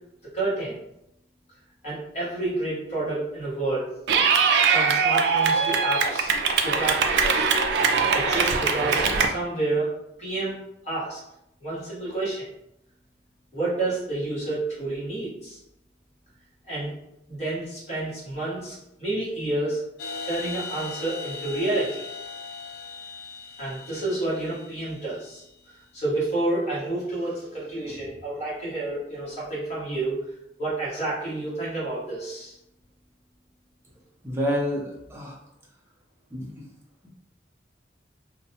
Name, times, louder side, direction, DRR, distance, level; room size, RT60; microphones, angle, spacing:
voice 1, 0.3-0.8 1.8-3.9 4.7-6.3 6.6-7.5 8.1-9.9 10.2-10.6 10.8-11.2 11.6-12.4 13.5-15.6 16.7-16.9 17.3-19.8 20.3-22.0 23.6-25.4 25.9-30.2 30.6-32.5, right 2 dB, 35° left, -8 dB, 1.2 m, -29 dB
Clapping / Cheering, 4.1-9.3, right 5 dB, 65° right, 0.3 m, -22 dB
sound 1, 20.0-25.6, left 4 dB, 60° left, 0.3 m, -39 dB
voice 2, 34.2-35.3 36.3-36.6, equal, 15° right, -3 dB, 0.5 m, -28 dB
2.6 x 2.1 x 2.8 m, 0.83 s
head